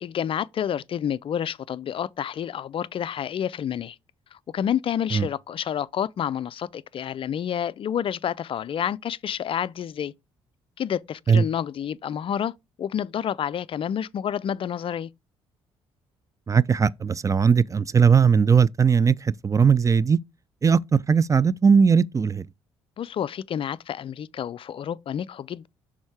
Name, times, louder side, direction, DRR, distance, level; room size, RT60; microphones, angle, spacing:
voice 1, 0.0-4.0 4.3-10.1 10.8-12.5 12.8-15.1 23.0-25.7, left 9 dB, 45° left, 0.4 m, -29 dB
voice 2, 16.5-20.2 20.6-22.5, right 6 dB, 25° right, 0.4 m, -19 dB
6.2 x 3.6 x 4.8 m
hypercardioid pair, 50°, 13 cm